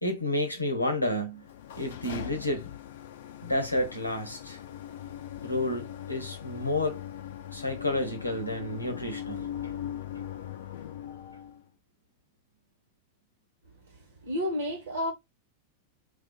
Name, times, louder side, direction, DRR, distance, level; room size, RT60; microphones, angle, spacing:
voice 1, 0.0-1.4 1.8-2.7 3.4-4.6 5.4-7.0 7.5-10.0, left 1 dB, 85° left, 0.7 m, -30 dB
sound 1, 1.3-11.6, left 10 dB, 55° left, 0.3 m, -40 dB
voice 2, 14.2-15.1, left 1 dB, 60° right, 1.2 m, -30 dB
2.5 x 2.3 x 2.2 m
figure-of-eight pair, 90°, 0 cm